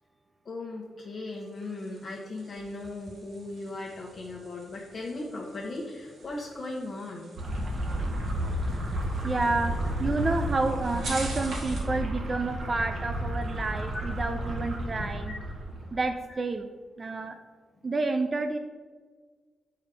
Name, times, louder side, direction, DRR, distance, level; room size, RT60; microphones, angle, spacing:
voice 1, 0.4-7.3 13.9-14.0 15.2-15.3 15.7-15.9 17.2-17.3, left 2 dB, 40° left, -4 dB, 1.1 m, -38 dB
sound 1, 1.3-12.0, right 2 dB, 75° right, 2.4 m, -46 dB
sound 2, 7.4-15.9, right 1 dB, 50° right, 1.3 m, -32 dB
voice 2, 9.2-9.7 10.0-13.9 14.2-15.3 15.9-16.7 17.0-17.4 17.8-18.6, right 3 dB, 30° right, 6 dB, 0.4 m, -29 dB
7.4 x 4.9 x 4.8 m, 1.5 s
wide cardioid pair, 135°, 0 cm